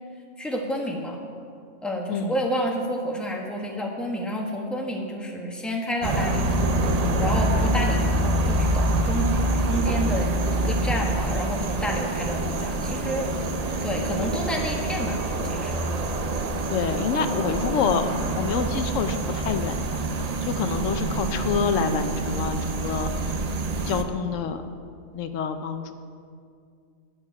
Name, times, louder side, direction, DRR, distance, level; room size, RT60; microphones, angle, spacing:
voice 1, 0.4-1.2 1.8-6.6 7.2-9.3 9.7-13.3 13.8-15.9, equal, ahead, 0 dB, 1.2 m, -29 dB
sound 1, 6.0-24.0, right 1 dB, 45° right, 0.6 m, -26 dB
voice 2, 16.7-23.1 23.8-24.6 25.1-25.9, left 6 dB, 80° left, 8 dB, 1.0 m, -27 dB
12.0 x 8.8 x 4.7 m, 2.3 s
omnidirectional pair, 1.3 m